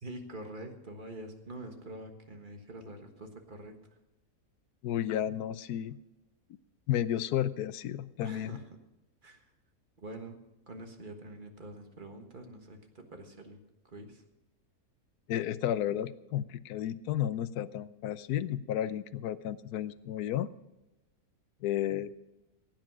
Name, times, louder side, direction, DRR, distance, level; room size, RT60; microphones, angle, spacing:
voice 1, 0.0-3.7 8.2-8.6 9.2-9.5 10.0-10.4 10.7-13.6 13.8-14.2, right 1 dB, 35° right, 5 dB, 1.6 m, -45 dB
voice 2, 4.8-6.0 6.9-8.6 15.3-20.5 21.6-22.1, left 11 dB, 85° left, 15 dB, 1.2 m, -32 dB
16.0 x 9.1 x 6.0 m, 0.98 s
omnidirectional pair, 1.6 m